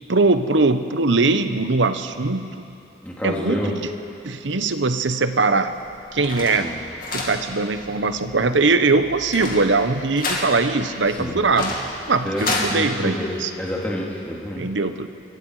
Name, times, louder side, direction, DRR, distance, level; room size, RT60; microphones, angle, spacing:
voice 1, 0.1-2.7 3.2-3.8 4.2-5.8 6.1-6.7 7.1-11.7 12.1-13.5 14.6-15.1, right 3 dB, 85° right, 9 dB, 1.0 m, -21 dB
voice 2, 3.0-3.7 6.6-6.8 11.2-11.3 12.2-14.7, equal, 10° left, -4 dB, 3.0 m, -28 dB
sound 1, 5.7-12.7, left 2 dB, 50° left, 2.9 m, -31 dB
27.5 x 23.0 x 4.9 m, 2.6 s
head